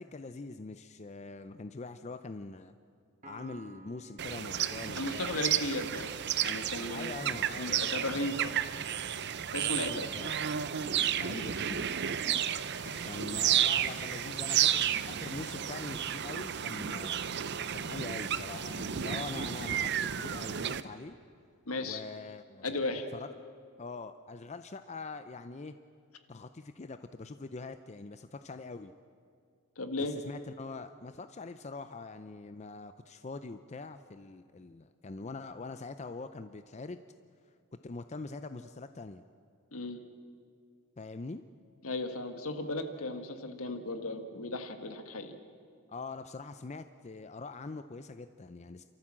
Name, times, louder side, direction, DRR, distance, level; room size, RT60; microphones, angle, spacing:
voice 1, 0.0-2.7 3.2-5.4 6.9-7.8 9.5-10.3 11.2-11.9 12.4-17.3 17.7-21.2 21.8-22.8 23.1-23.3 23.8-25.7 26.3-28.9 30.0-37.0 37.8-39.2 41.0-41.4 45.9-48.8, left 3 dB, 30° left, 10 dB, 0.5 m, -43 dB
Piano, 3.2-6.8, right 2 dB, 35° right, 1.2 m, -56 dB
sound 1, 4.2-20.8, right 9 dB, 50° right, 0.6 m, -32 dB
voice 2, 4.9-6.1 6.4-7.1 7.6-8.5 9.5-10.1 12.8-13.1 21.7-22.0 22.6-23.1 29.8-30.1 39.7-40.0 41.8-45.4, left 2 dB, 70° left, 7 dB, 1.6 m, -35 dB
29.5 x 13.5 x 7.6 m, 2.3 s
head